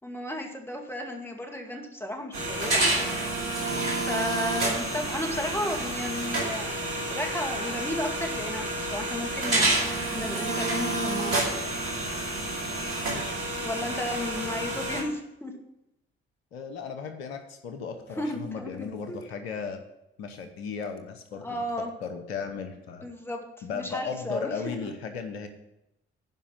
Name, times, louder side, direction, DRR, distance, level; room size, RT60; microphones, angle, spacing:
voice 1, 0.0-3.1 3.6-11.7 13.6-15.5 18.2-19.2 21.3-21.9 23.0-23.4 23.7-24.9, left 1 dB, 5° left, 2 dB, 2.3 m, -34 dB
sound 1, 2.3-15.0, right 2 dB, 80° right, 2.6 m, -29 dB
voice 2, 3.7-4.0 13.1-13.4 16.5-19.8 20.2-21.6 22.0-23.1 23.6-25.5, left 6 dB, 85° left, 8 dB, 1.0 m, -36 dB
11.0 x 5.1 x 7.4 m, 0.88 s
hypercardioid pair, 45°, 31 cm